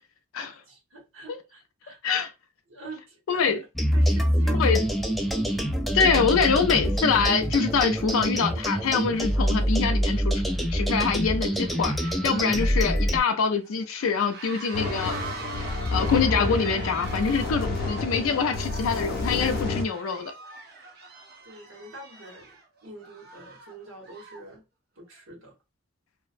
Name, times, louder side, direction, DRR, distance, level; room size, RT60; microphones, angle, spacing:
voice 1, 0.4-2.0 2.7-3.6 3.9-5.0 12.2-12.5 21.4-24.6 25.0-25.5, right 2 dB, 75° right, 1.1 m, -45 dB
voice 2, 3.3-3.6 4.6-4.8 5.9-10.4 10.7-15.2 15.6-20.3, left 5 dB, 85° left, 0.4 m, -25 dB
sound 1, 3.8-13.2, equal, ahead, 0.3 m, -25 dB
sound 2, 8.1-8.2 8.6-24.5, right 3 dB, 50° right, 0.7 m, -44 dB
sound 3, 14.7-19.8, left 3 dB, 55° left, 0.7 m, -30 dB
2.4 x 2.0 x 2.4 m
head